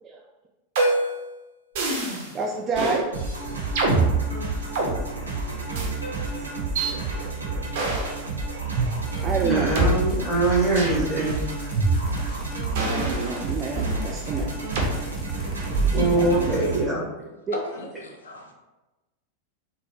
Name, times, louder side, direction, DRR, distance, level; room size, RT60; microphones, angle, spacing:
sound 1, 0.8-1.2 1.8-2.3 2.7-3.0 3.8-4.9 5.7-5.9 6.8-6.9 7.7-8.2 8.8-8.9 9.8-9.9 10.8-11.0 11.8-12.3 12.8-14.0 14.8-14.9 15.7-16.1, right 3 dB, 50° right, 0.9 m, -24 dB
voice 1, 2.3-3.1 3.8-3.9 9.2-9.8 12.9-14.5 15.9-16.7 17.5-17.6, right 4 dB, 25° right, 2 dB, 0.3 m, -29 dB
sound 2, 3.1-16.8, right 3 dB, 80° right, 1.0 m, -31 dB
sound 3, 9.1-9.6 10.0-16.4, equal, 25° left, 0.5 m, -39 dB
voice 2, 9.4-11.5 15.9-17.1, right 2 dB, 5° right, -6 dB, 1.4 m, -23 dB
voice 3, 17.5-18.5, left 1 dB, 70° left, 2 dB, 0.5 m, -37 dB
4.1 x 2.1 x 3.6 m, 1.1 s
figure-of-eight pair, 90°, 0 cm